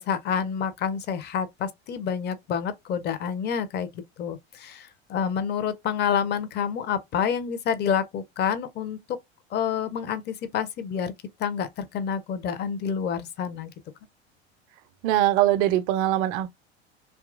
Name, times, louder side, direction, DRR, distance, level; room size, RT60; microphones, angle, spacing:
voice 1, 0.0-3.9 4.2-9.2 9.5-11.1 11.4-13.7, left 7 dB, 30° left, 0.6 m, -28 dB
voice 2, 15.0-16.5, right 13 dB, 50° right, 0.5 m, -22 dB
2.8 x 2.3 x 2.3 m
hypercardioid pair, 80°, 33 cm